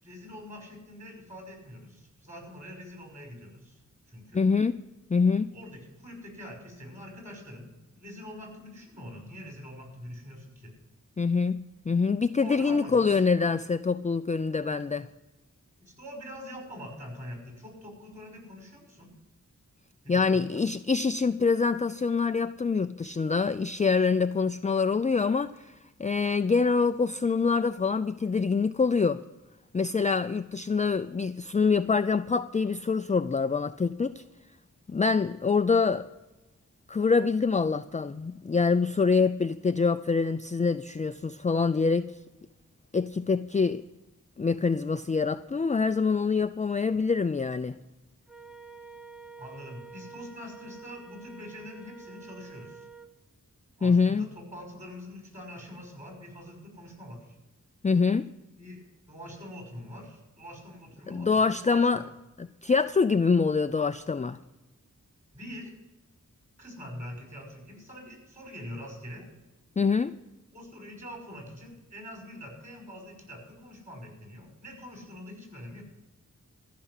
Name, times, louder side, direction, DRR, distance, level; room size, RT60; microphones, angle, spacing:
voice 1, 0.0-3.8 4.1-4.4 5.5-7.7 7.9-10.7 12.4-13.2 15.8-19.1 20.0-20.6 49.4-52.9 53.8-57.4 58.6-58.8 59.1-62.1 65.3-65.7 66.6-69.3 70.5-75.8, equal, 25° right, 5.8 m, -44 dB
voice 2, 4.3-4.8 5.1-5.5 11.2-15.1 20.1-29.2 29.7-34.2 34.9-36.1 36.9-42.2 42.9-43.8 44.4-47.8 53.8-54.3 57.8-58.3 61.1-62.0 62.4-64.4 69.8-70.1, left 4 dB, 25° left, 0.4 m, -25 dB
Wind instrument woodwind instrument, 48.3-53.1, right 4 dB, 5° right, 1.2 m, -48 dB
14.0 x 6.0 x 9.9 m
wide cardioid pair, 60°, 32 cm